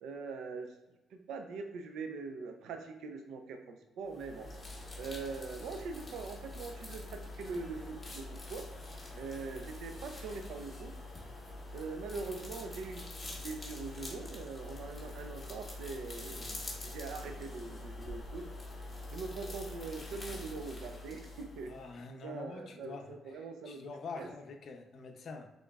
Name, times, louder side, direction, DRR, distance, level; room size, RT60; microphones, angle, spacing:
voice 1, 0.0-0.7 1.1-4.5 5.0-8.7 9.2-10.9 11.7-16.5 16.8-18.5 19.1-21.7 22.2-24.3, right 4 dB, 80° right, 6 dB, 0.5 m, -42 dB
sound 1, 4.1-21.9, left 2 dB, 20° left, 1.4 m, -45 dB
voice 2, 21.7-25.5, left 4 dB, 60° left, 5 dB, 0.6 m, -46 dB
5.6 x 3.7 x 2.4 m, 1.0 s
cardioid pair, 90°, 0 cm